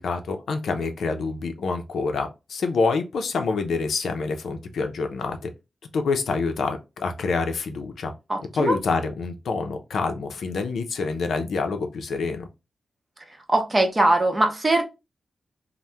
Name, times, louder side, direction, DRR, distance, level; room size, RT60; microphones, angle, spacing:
voice 1, 0.0-5.5 5.9-8.1 8.5-12.5, left 4 dB, 85° left, 0.5 m, -27 dB
voice 2, 8.3-8.8 13.5-14.8, right 2 dB, 25° right, 0.7 m, -21 dB
2.8 x 2.1 x 3.3 m
wide cardioid pair, 110°, 0 cm